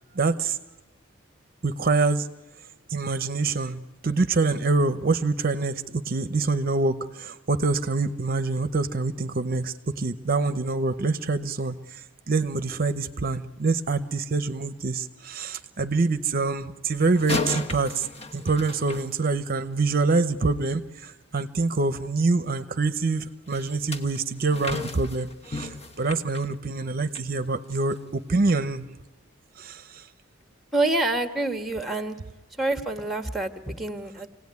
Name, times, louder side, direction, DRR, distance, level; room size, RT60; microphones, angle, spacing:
voice 1, 0.1-0.6 1.6-2.3 2.9-18.1 18.3-28.9 29.6-30.1, right 3 dB, 45° right, 11 dB, 0.7 m, -26 dB
sound 1, 17.1-19.7 23.5-27.3 27.7-27.9 28.5-28.6, left 3 dB, 30° left, 1.3 m, -34 dB
voice 2, 30.7-32.2 32.6-34.3, right 2 dB, ahead, 7 dB, 1.3 m, -27 dB
26.5 x 17.5 x 9.5 m, 1.2 s
head